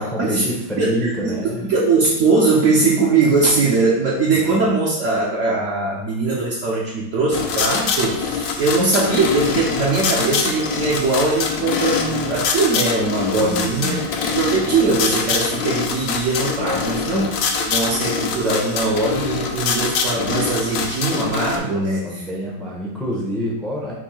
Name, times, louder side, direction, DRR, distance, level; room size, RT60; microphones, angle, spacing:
voice 1, 0.0-1.7 4.3-4.6 13.4-14.1 16.7-16.9 21.6-23.9, equal, ahead, -3 dB, 0.4 m, -27 dB
voice 2, 0.8-1.4 1.6-14.0 14.4-22.2, right 3 dB, 65° right, -5 dB, 1.0 m, -20 dB
sound 1, 7.3-21.6, left 5 dB, 75° left, 1.0 m, -24 dB
4.4 x 2.6 x 4.2 m, 0.87 s
omnidirectional pair, 1.5 m